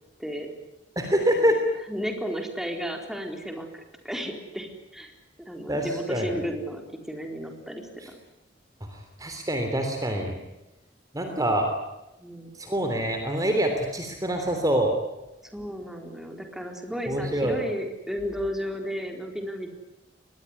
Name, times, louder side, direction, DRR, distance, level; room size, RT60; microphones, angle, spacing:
voice 1, 1.0-1.6 5.7-6.4 8.9-10.4 11.1-11.7 12.6-14.9 17.1-17.6, right 1 dB, 20° right, 5 dB, 3.3 m, -25 dB
voice 2, 1.9-8.1 12.2-12.5 15.4-19.8, equal, ahead, 3 dB, 4.2 m, -34 dB
24.5 x 20.5 x 9.8 m, 0.96 s
head